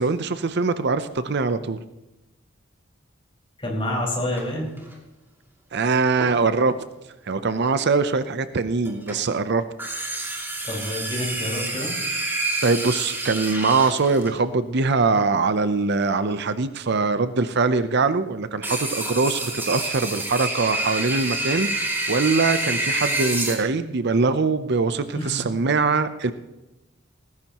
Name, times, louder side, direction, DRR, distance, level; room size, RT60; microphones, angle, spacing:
voice 1, 0.0-1.8 5.7-6.8 7.3-9.6 12.6-21.7 22.1-26.3, right 4 dB, 55° right, 12 dB, 0.7 m, -22 dB
voice 2, 3.6-4.7 10.6-11.9 25.1-25.5, left 1 dB, 30° left, -3 dB, 5.2 m, -28 dB
sound 1, 4.3-4.9 6.2-6.8 8.9-9.3 9.8-14.3 18.6-23.6, right 2 dB, 10° right, 2.7 m, -28 dB
18.5 x 15.5 x 3.0 m, 1.0 s
head